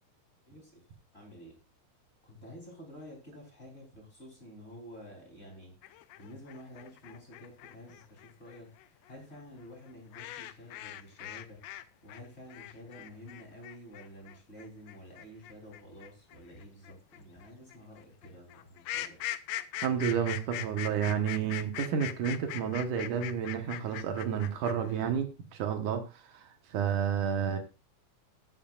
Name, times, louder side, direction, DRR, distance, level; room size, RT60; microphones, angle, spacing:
voice 1, 1.1-1.5 2.2-5.7 6.2-8.7 9.1-11.6 12.0-19.2, equal, 20° left, -1 dB, 3.7 m, -50 dB
sound 1, 5.8-11.8 12.1-25.0, left 13 dB, 75° left, 1.6 m, -41 dB
voice 2, 19.8-26.0 26.7-27.6, right 8 dB, 80° right, 6 dB, 2.8 m, -30 dB
19.0 x 7.2 x 2.5 m, 0.29 s
omnidirectional pair, 3.6 m